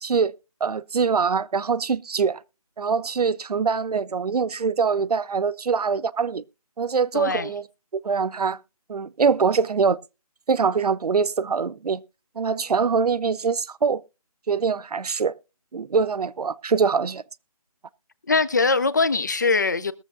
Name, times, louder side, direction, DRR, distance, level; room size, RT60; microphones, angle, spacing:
voice 1, 0.0-0.3 0.6-2.4 2.8-6.4 6.8-7.6 7.9-8.6 8.9-10.0 10.5-12.0 12.4-14.0 14.5-15.3 15.7-17.2, right 5 dB, 85° right, 0.6 m, -23 dB
voice 2, 7.1-7.5 18.3-19.9, left 4 dB, 30° left, 0.5 m, -22 dB
22.0 x 7.3 x 2.4 m
hypercardioid pair, 170°, 19 cm